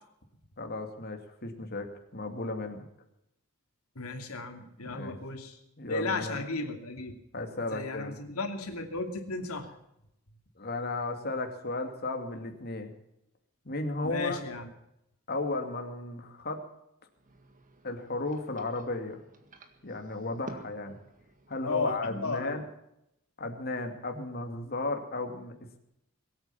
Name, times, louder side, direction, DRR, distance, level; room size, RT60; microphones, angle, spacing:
voice 1, 0.6-2.9 4.8-5.2 5.8-6.4 7.3-8.2 10.6-12.9 13.6-14.4 15.3-16.7 17.8-19.2 19.8-21.0 21.5-22.6 23.4-25.8, left 2 dB, 45° left, 4 dB, 2.5 m, -34 dB
voice 2, 4.0-5.6 5.9-7.1 7.7-9.8 14.0-14.7 21.6-22.0 22.2-22.6, left 3 dB, 85° left, 5 dB, 2.7 m, -34 dB
sound 1, 17.1-22.2, right 2 dB, 35° right, 1.8 m, -52 dB
22.0 x 9.0 x 7.2 m, 0.82 s
head